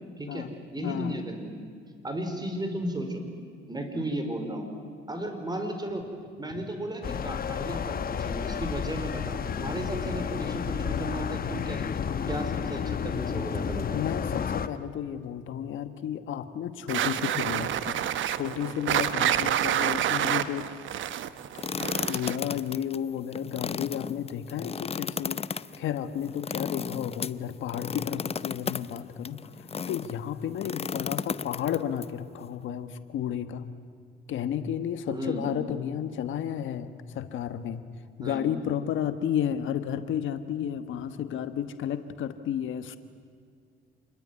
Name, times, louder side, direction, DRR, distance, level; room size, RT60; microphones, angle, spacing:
voice 1, 0.2-1.6 2.0-3.3 3.7-4.7 5.1-6.0 6.4-14.0 35.1-35.5 38.2-38.4, right 1 dB, 20° right, 6 dB, 4.7 m, -34 dB
voice 2, 0.8-1.2 6.5-6.6 13.9-20.7 22.1-25.4 25.8-33.7 34.3-37.8 38.2-43.0, left 9 dB, 75° left, 10 dB, 1.4 m, -32 dB
sound 1, 7.0-14.7, left 7 dB, 50° left, 1.2 m, -31 dB
sound 2, 16.9-22.5, right 11 dB, 75° right, 1.1 m, -28 dB
sound 3, 21.6-30.1 30.6-32.1, left 6 dB, 30° left, 0.7 m, -34 dB
27.5 x 21.0 x 9.6 m, 2.2 s
cardioid pair, 90°, 20 cm